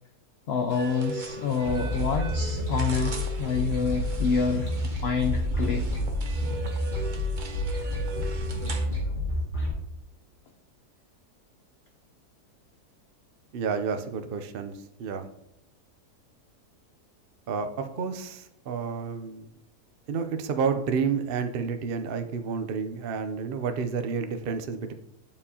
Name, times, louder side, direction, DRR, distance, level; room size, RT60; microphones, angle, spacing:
voice 1, 0.5-4.7 5.0-5.8, left 5 dB, 60° left, 5 dB, 0.6 m, -27 dB
sound 1, 0.7-8.9, right 2 dB, 40° right, 0.8 m, -37 dB
sound 2, 1.6-9.7, left 1 dB, 30° left, 2.2 m, -29 dB
voice 2, 13.5-15.3 17.5-19.5 20.1-24.9, right 5 dB, 70° right, 8 dB, 0.5 m, -30 dB
8.7 x 7.1 x 2.8 m, 0.78 s
omnidirectional pair, 1.7 m